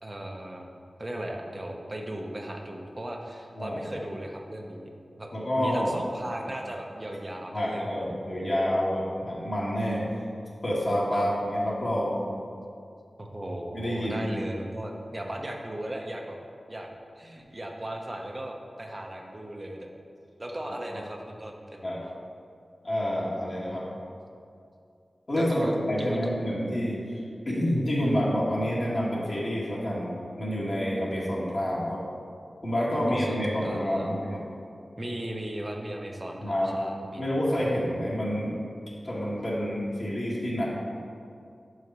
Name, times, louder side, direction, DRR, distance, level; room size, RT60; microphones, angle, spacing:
voice 1, 0.0-0.7 1.0-4.9 5.2-5.3 5.6-8.1 11.1-11.2 13.2-16.4 16.7-16.9 17.2-19.9 20.4-21.9 25.4-25.7 26.0-26.3 33.0-34.2 35.0-37.2, right 1 dB, 35° right, 1 dB, 0.9 m, -37 dB
voice 2, 5.3-5.9 6.5-6.6 7.5-10.1 10.6-12.3 13.7-14.4 20.9-21.0 21.8-22.0 22.8-23.8 25.3-27.0 27.4-30.1 30.4-32.0 32.6-34.4 36.3-36.8 37.2-38.5 39.0-40.7, equal, 55° left, -7 dB, 1.6 m, -28 dB
5.6 x 4.8 x 5.4 m, 2.4 s
cardioid pair, 45°, 0 cm